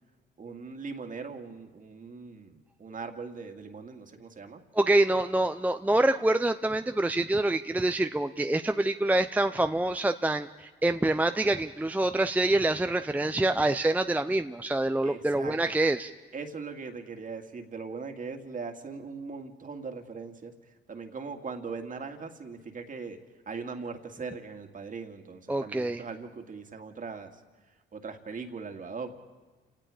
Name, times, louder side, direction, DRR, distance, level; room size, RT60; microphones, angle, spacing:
voice 1, 0.4-4.6 15.0-15.8 16.3-20.5 20.9-23.2 23.5-27.3 27.9-29.1, right 4 dB, 40° right, 6 dB, 2.3 m, -40 dB
voice 2, 4.7-16.1 25.5-26.0, right 2 dB, 10° right, 8 dB, 0.6 m, -26 dB
29.0 x 18.0 x 5.1 m, 1.3 s
cardioid pair, 90°, 20 cm